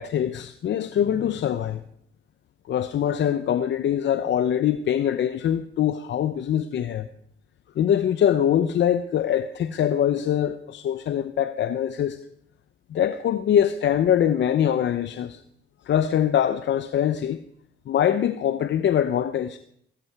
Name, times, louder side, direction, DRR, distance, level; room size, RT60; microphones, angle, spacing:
voice 1, 0.0-1.8 2.7-7.1 7.8-12.2 12.9-15.4 15.8-17.4 17.9-19.6, left 9 dB, 60° left, 0.8 m, -23 dB
16.5 x 13.5 x 4.7 m
cardioid pair, 90°, 21 cm